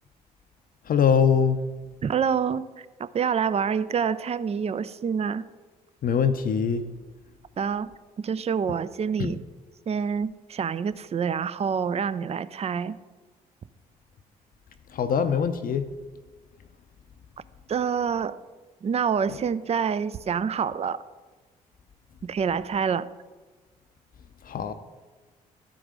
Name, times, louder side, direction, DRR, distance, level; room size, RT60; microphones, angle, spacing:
voice 1, 0.9-1.6 6.0-6.8 9.2-9.3 14.9-15.9 24.5-24.7, left 7 dB, 45° left, 9 dB, 0.6 m, -22 dB
voice 2, 2.0-5.4 7.6-7.9 8.2-9.4 9.9-12.9 17.7-18.4 18.8-21.0 22.3-23.1, right 7 dB, 35° right, 14 dB, 0.5 m, -27 dB
12.5 x 4.7 x 3.8 m, 1.2 s
hypercardioid pair, 45°, 20 cm